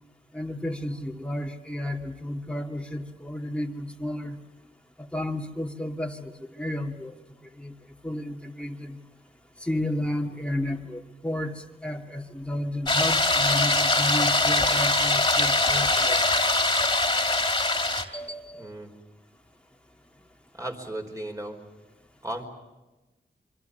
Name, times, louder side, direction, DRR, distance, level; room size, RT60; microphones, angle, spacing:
voice 1, 0.3-4.4 5.1-7.1 7.6-7.7 8.0-9.0 9.6-16.2 18.1-18.7, left 1 dB, 5° left, 2 dB, 2.6 m, -32 dB
sound 1, 12.9-18.0, left 2 dB, 25° left, 2.8 m, -22 dB
voice 2, 18.6-18.9 20.5-21.6 22.2-22.5, right 1 dB, 15° right, 4 dB, 5.0 m, -35 dB
26.5 x 24.0 x 6.9 m, 1.1 s
cardioid pair, 60°, 19 cm